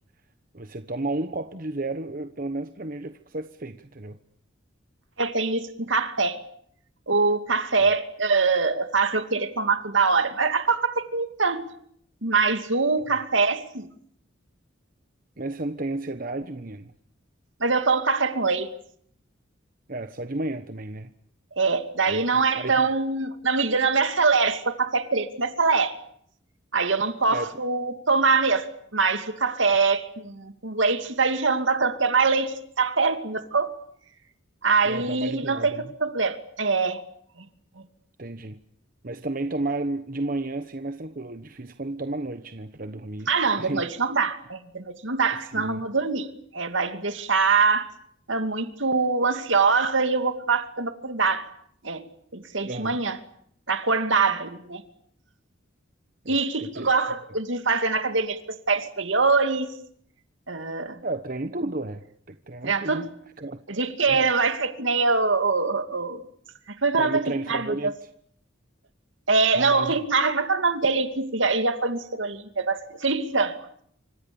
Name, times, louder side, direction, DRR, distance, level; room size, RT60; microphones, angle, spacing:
voice 1, 0.5-4.2 7.8-7.9 13.1-13.2 15.4-16.9 19.9-21.1 22.1-22.9 27.3-27.5 34.8-35.9 38.2-38.6 39.0-43.9 45.5-45.8 52.6-53.0 56.2-56.9 61.0-63.6 64.1-64.3 67.0-68.1 69.5-70.0, right 2 dB, 45° right, 9 dB, 1.1 m, -32 dB
voice 2, 5.2-6.4 7.1-11.6 12.2-13.9 17.6-18.7 21.6-26.0 26.7-28.7 28.9-33.7 34.6-37.0 43.3-47.9 48.3-51.5 51.8-52.0 52.3-53.2 53.7-54.8 56.3-58.4 58.7-59.7 60.5-61.0 62.6-63.1 63.7-66.2 66.8-67.7 69.3-73.6, right 4 dB, 70° right, 8 dB, 2.6 m, -24 dB
28.0 x 26.0 x 7.1 m, 0.68 s
head